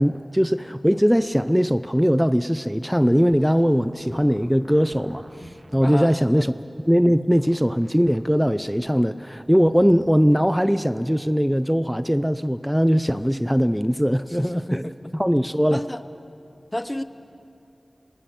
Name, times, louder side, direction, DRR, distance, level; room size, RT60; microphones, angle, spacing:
voice 1, 0.0-6.5 6.9-14.9 15.1-15.8, equal, 5° right, 13 dB, 0.5 m, -20 dB
sound 1, 3.4-6.1 6.7-8.9 9.3-10.2, right 2 dB, 70° right, 1.7 m, -48 dB
voice 2, 5.8-6.4 14.4-15.1 15.7-16.0 16.7-17.0, left 1 dB, 20° left, 11 dB, 0.9 m, -31 dB
26.0 x 19.0 x 7.2 m, 2.7 s
wide cardioid pair, 50°, 0 cm